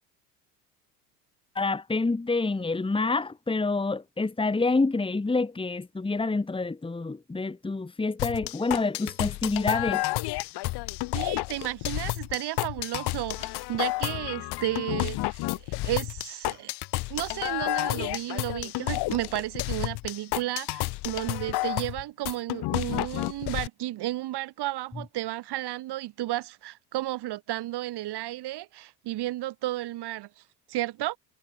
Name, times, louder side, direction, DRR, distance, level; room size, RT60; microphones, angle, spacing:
voice 1, 1.6-10.0, left 3 dB, 10° left, 2.1 m, -27 dB
sound 1, 8.2-23.7, left 20 dB, 55° left, 1.4 m, -31 dB
voice 2, 11.1-16.7 17.1-30.4 30.7-31.2, right 16 dB, 55° right, 6.0 m, -33 dB
hypercardioid pair, 80°, 48 cm